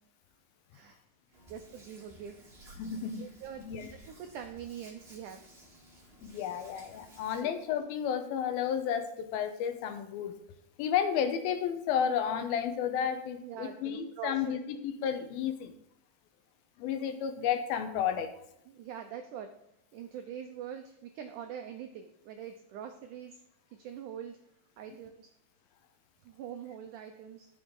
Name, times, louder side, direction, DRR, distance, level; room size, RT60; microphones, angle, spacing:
Hands, 1.3-7.4, right 1 dB, 20° right, 2.5 m, -55 dB
voice 1, 1.5-2.4 3.2-3.6 4.1-5.5 6.0-6.2 7.4-7.5 13.4-14.5 18.7-19.6 19.9-23.4 23.8-24.4 24.8-25.3 26.2-27.5, right 8 dB, 85° right, 5 dB, 1.8 m, -43 dB
voice 2, 2.8-3.2 3.7-3.9 6.2-10.4 10.8-15.7 16.8-18.3, left 8 dB, 75° left, 8 dB, 2.5 m, -32 dB
13.5 x 7.0 x 3.8 m, 0.80 s
omnidirectional pair, 4.5 m